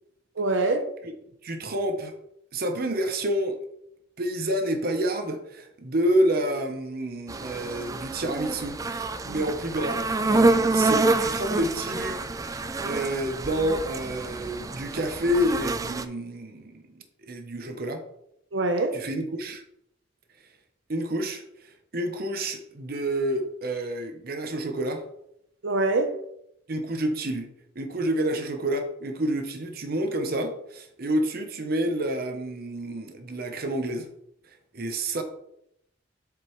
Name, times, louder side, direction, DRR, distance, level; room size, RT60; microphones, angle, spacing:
voice 1, 0.4-0.8 18.5-19.0 25.6-26.2 35.2-35.3, right 2 dB, 85° right, 0.8 m, -24 dB
voice 2, 1.4-2.1 2.5-3.6 4.2-16.9 17.2-18.0 18.9-19.6 20.9-25.0 26.7-27.5 27.8-34.1 34.7-35.2, right 1 dB, 50° right, 0.8 m, -29 dB
sound 1, 7.3-16.0, right 2 dB, 20° right, 0.3 m, -27 dB
7.5 x 5.2 x 3.1 m
head